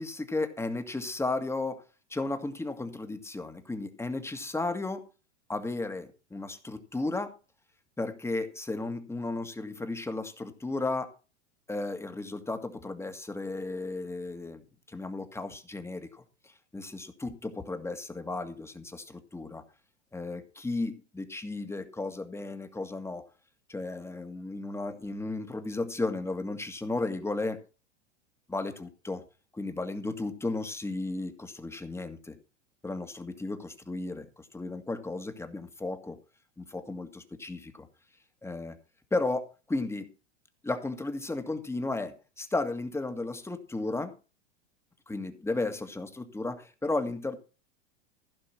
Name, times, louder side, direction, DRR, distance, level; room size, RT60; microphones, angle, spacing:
voice 1, 0.0-1.8 2.1-5.1 5.5-7.3 8.0-11.1 11.7-14.6 14.9-19.6 20.1-23.2 23.7-27.6 28.5-29.2 29.5-32.4 32.8-36.2 36.6-37.9 38.4-38.7 39.1-40.1 40.6-44.1 45.1-47.4, left 2 dB, 5° left, 8 dB, 1.8 m, -34 dB
15.5 x 5.7 x 5.9 m, 0.33 s
hypercardioid pair, 100°, 35 cm